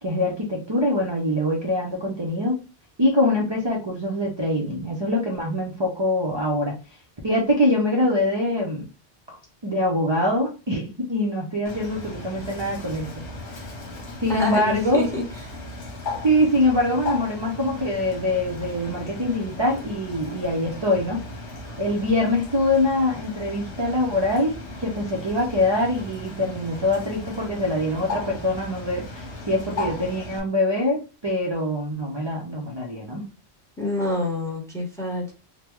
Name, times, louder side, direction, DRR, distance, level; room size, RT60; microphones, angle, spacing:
voice 1, 0.0-2.6 3.0-6.7 7.2-8.9 9.3-9.4 9.6-13.1 14.2-15.1 16.2-21.2 21.8-33.3, left 1 dB, 30° right, -1 dB, 0.6 m, -24 dB
Bird, 11.7-30.4, left 2 dB, 85° left, 1.3 m, -36 dB
voice 2, 14.3-15.2 33.8-35.3, left 2 dB, 5° left, 0 dB, 0.8 m, -26 dB
3.5 x 2.2 x 3.0 m, 0.31 s
omnidirectional pair, 1.1 m